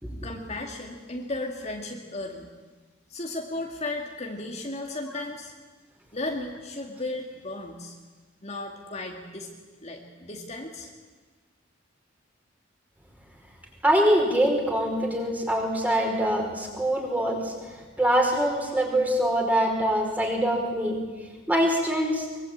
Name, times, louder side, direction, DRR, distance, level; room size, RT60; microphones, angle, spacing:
voice 1, 0.2-2.5 3.1-5.5 6.1-8.0 8.4-9.5 9.8-10.9, left 2 dB, 35° left, 1 dB, 2.3 m, -35 dB
voice 2, 13.8-21.0 21.5-22.3, equal, 10° right, 1 dB, 5.0 m, -24 dB
23.5 x 23.0 x 8.9 m, 1.4 s
head